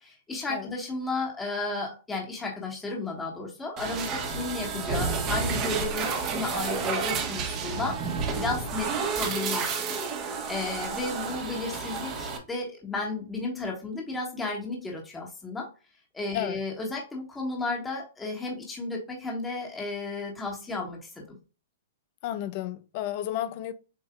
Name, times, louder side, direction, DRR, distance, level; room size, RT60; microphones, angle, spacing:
voice 1, 0.0-10.0 10.4-15.7 16.1-21.2, left 3 dB, 10° left, 1.4 m, -33 dB
sound 1, 3.8-12.4, right 5 dB, 35° right, 1.2 m, -30 dB
voice 2, 22.2-23.7, left 12 dB, 45° left, 0.5 m, -32 dB
7.3 x 2.6 x 2.2 m
hypercardioid pair, 130°, 0 cm